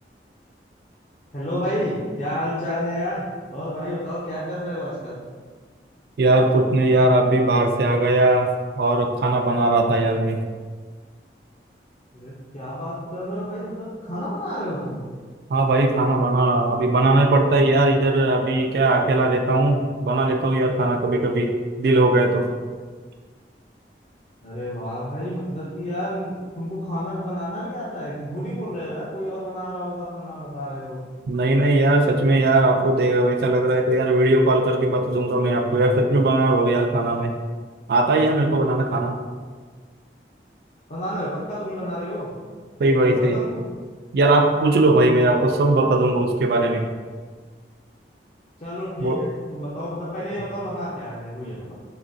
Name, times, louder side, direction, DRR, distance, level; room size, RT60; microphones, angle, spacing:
voice 1, 1.3-5.2 12.1-15.0 24.4-31.0 40.9-42.3 42.9-43.7 48.6-51.7, equal, 40° left, -9 dB, 0.6 m, -30 dB
voice 2, 6.2-8.5 8.8-10.4 15.5-22.5 31.3-37.3 37.9-39.2 42.8-43.4 44.1-46.9 49.0-49.2, right 2 dB, 60° right, 4 dB, 0.3 m, -19 dB
3.9 x 3.1 x 2.6 m, 1.5 s
head